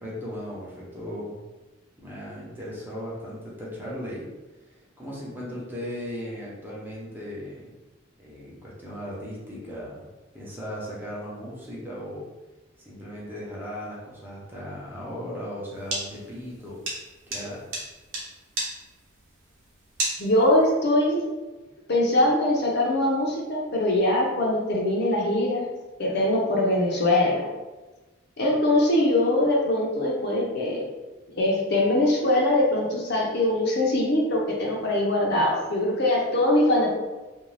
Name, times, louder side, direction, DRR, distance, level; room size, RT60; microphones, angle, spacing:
voice 1, 0.0-1.4 2.0-4.3 4.7-7.7 8.2-10.1 10.3-12.3 12.8-16.8 17.3-17.6, equal, 10° right, -6 dB, 0.7 m, -37 dB
sound 1, 15.8-20.7, right 2 dB, 65° right, 0.8 m, -32 dB
voice 2, 20.2-21.2 21.9-25.7 26.0-27.5 28.4-30.9 31.4-36.9, left 1 dB, 55° left, -2 dB, 0.6 m, -22 dB
2.6 x 2.3 x 3.2 m, 1.2 s
head